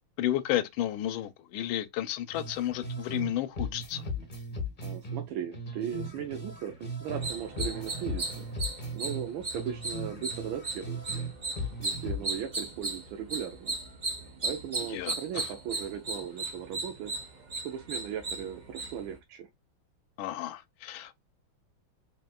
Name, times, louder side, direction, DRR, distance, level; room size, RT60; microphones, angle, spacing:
voice 1, 0.2-4.0 14.9-15.5 20.2-21.1, left 12 dB, 80° left, 1.4 m, -32 dB
sound 1, 2.3-3.3 3.6-7.3 7.6-11.3 11.6-12.3, equal, 35° left, 0.8 m, -37 dB
voice 2, 4.8-8.5 8.9-11.2 11.8-13.8 14.4-17.1 17.6-19.5, right 9 dB, 80° right, 1.4 m, -37 dB
sound 2, 7.1-19.2, right 3 dB, 60° right, 0.4 m, -37 dB
4.3 x 3.3 x 2.3 m
omnidirectional pair, 2.2 m